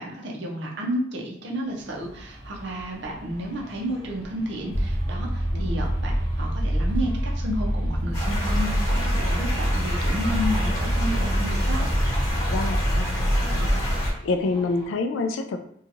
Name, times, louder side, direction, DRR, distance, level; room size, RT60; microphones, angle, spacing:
voice 1, 0.0-11.8, equal, 65° right, -1 dB, 0.6 m, -31 dB
sound 1, 1.6-14.9, equal, 10° right, 0.8 m, -44 dB
sound 2, 4.7-14.1, equal, 45° left, 0.6 m, -25 dB
voice 2, 5.5-5.8 12.5-13.1 13.3-13.9 14.2-15.7, left 3 dB, 85° left, 7 dB, 0.3 m, -28 dB
sound 3, 8.1-14.1, equal, 20° left, 1.1 m, -31 dB
2.8 x 2.3 x 2.6 m, 0.69 s
head